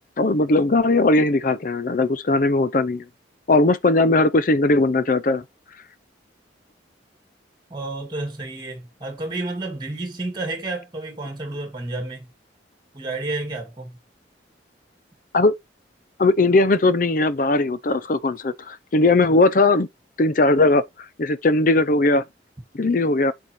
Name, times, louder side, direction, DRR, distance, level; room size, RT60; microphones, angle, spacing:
voice 1, 0.2-3.0 3.5-5.4 15.3-15.5 16.2-19.9 20.2-20.8 21.2-22.2 22.7-23.3, left 2 dB, 45° left, 0.5 m, -19 dB
voice 2, 7.7-12.3 12.9-14.0, right 2 dB, 25° right, 2.1 m, -30 dB
8.3 x 5.3 x 3.1 m
head